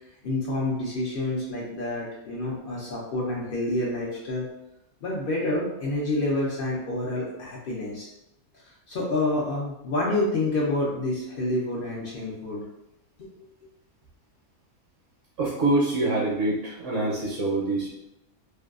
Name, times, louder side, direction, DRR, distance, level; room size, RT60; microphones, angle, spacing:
voice 1, 0.2-4.5 5.0-8.1 8.5-12.6 13.2-13.3, left 2 dB, 65° left, -4 dB, 0.5 m, -28 dB
voice 2, 15.4-17.9, right 2 dB, 65° right, -4 dB, 0.9 m, -25 dB
2.6 x 2.2 x 2.3 m, 0.86 s
omnidirectional pair, 1.5 m